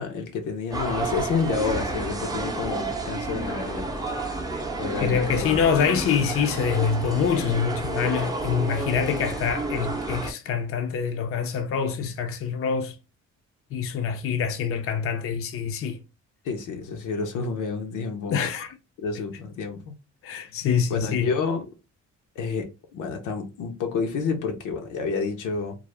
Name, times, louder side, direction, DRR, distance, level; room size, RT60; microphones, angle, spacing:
voice 1, 0.0-4.0 4.8-5.6 16.4-18.4 19.0-19.9 20.9-21.7 22.4-25.8, left 5 dB, 85° left, 0.7 m, -29 dB
sound 1, 0.7-10.3, right 3 dB, 15° right, 0.5 m, -30 dB
voice 2, 5.0-13.0 13.7-16.0 18.3-18.8 20.2-21.3, left 7 dB, 50° left, 0.5 m, -25 dB
2.4 x 2.0 x 3.1 m
cardioid pair, 90°, 30 cm